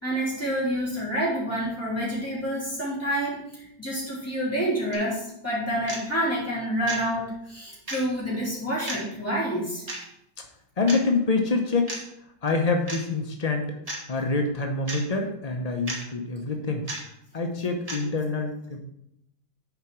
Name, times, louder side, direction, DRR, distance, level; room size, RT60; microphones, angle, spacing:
voice 1, 0.0-9.8, equal, 5° left, -8 dB, 3.3 m, -28 dB
sound 1, 4.9-5.0 5.9-6.0 6.9-7.0 7.9-8.0 8.9-9.0 9.9-10.0 10.9-11.0 11.9-12.0 12.9-13.0 13.9-14.0 14.9-15.0 15.9-16.0 16.9-17.0 17.9-18.0, right 1 dB, 20° right, 1.4 m, -33 dB
voice 2, 10.8-12.0 12.4-13.7 14.1-16.8 17.3-18.8, left 3 dB, 85° left, 3 dB, 0.3 m, -26 dB
7.2 x 4.8 x 5.9 m, 0.79 s
omnidirectional pair, 2.0 m